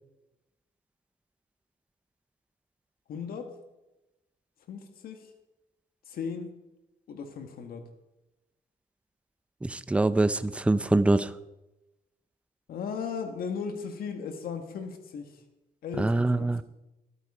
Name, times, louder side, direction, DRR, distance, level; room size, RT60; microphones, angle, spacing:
voice 1, 3.1-3.5 4.7-5.3 6.1-6.5 7.1-7.9 12.7-15.4 15.8-16.6, left 6 dB, 70° left, 6 dB, 1.7 m, -36 dB
voice 2, 9.6-11.3 16.0-16.6, right 2 dB, 10° right, 13 dB, 0.5 m, -24 dB
13.0 x 12.5 x 5.0 m, 0.98 s
cardioid pair, 100°, 16 cm